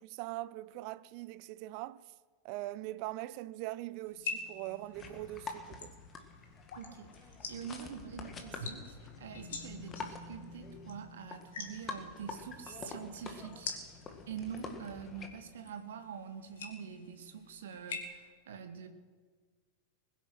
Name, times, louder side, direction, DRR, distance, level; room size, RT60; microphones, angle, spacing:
voice 1, 0.0-2.0 2.4-6.0, right 17 dB, 45° right, 0.4 m, -42 dB
sound 1, 4.1-18.0, left 5 dB, 60° left, 2.4 m, -47 dB
sound 2, 4.9-15.3, left 4 dB, 20° left, 2.0 m, -47 dB
voice 2, 6.7-13.7 14.3-18.9, right 7 dB, 60° right, 1.6 m, -45 dB
21.0 x 10.0 x 6.5 m
figure-of-eight pair, 90°, 0 cm